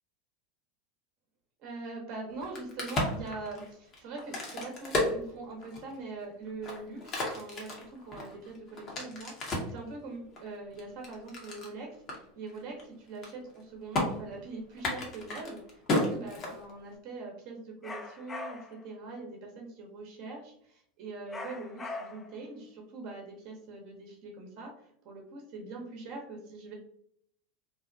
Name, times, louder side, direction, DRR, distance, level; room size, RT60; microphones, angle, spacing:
voice 1, 1.6-26.7, right 3 dB, 50° right, 1 dB, 0.7 m, -43 dB
Crack, 2.3-6.0 6.5-9.8 10.4-11.7 12.1-12.2 12.5-12.8 13.1-13.6 13.9-14.1 14.7-17.0, left 2 dB, 40° left, 0.9 m, -33 dB
sound 1, 17.8-18.8 21.3-22.4, left 3 dB, 20° left, 0.3 m, -41 dB
2.6 x 2.1 x 2.6 m, 0.69 s
hypercardioid pair, 95°, 0 cm